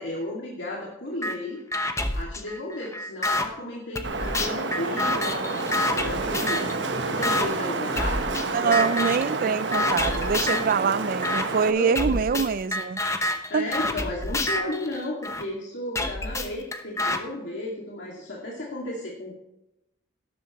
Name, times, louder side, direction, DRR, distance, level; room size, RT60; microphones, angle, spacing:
voice 1, 0.0-1.6 2.1-8.9 10.4-10.9 11.7-11.9 13.5-19.3, left 1 dB, 80° left, 2.3 m, -34 dB
sound 1, 1.2-1.4 1.7-3.5 4.0-6.8 7.2-7.5 8.0-8.5 8.7-9.3 9.7-10.7 11.2-11.5 12.0-15.4 16.0-17.2, left 1 dB, 15° left, 0.9 m, -28 dB
Wind, 4.0-11.7, right 3 dB, 70° right, 1.2 m, -29 dB
voice 2, 8.5-13.0 13.5-13.7, right 6 dB, 50° right, 0.4 m, -24 dB
12.5 x 11.5 x 3.1 m
head